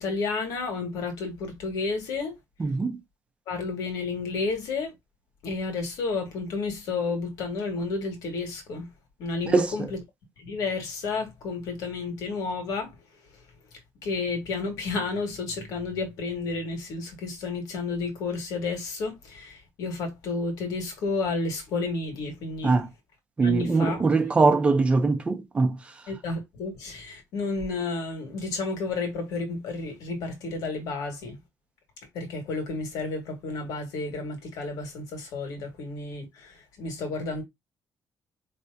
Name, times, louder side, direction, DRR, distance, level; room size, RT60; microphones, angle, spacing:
voice 1, 0.0-2.3 3.5-4.9 5.4-8.9 9.2-10.0 10.4-12.9 14.0-22.7 23.4-24.1 26.1-31.4 32.1-37.4, left 3 dB, 90° left, 1.9 m, -31 dB
voice 2, 2.6-3.0 9.5-9.7 22.6-22.9 23.4-25.7, right 3 dB, 20° right, 0.7 m, -22 dB
4.7 x 3.4 x 2.7 m
cardioid pair, 175°, 6 cm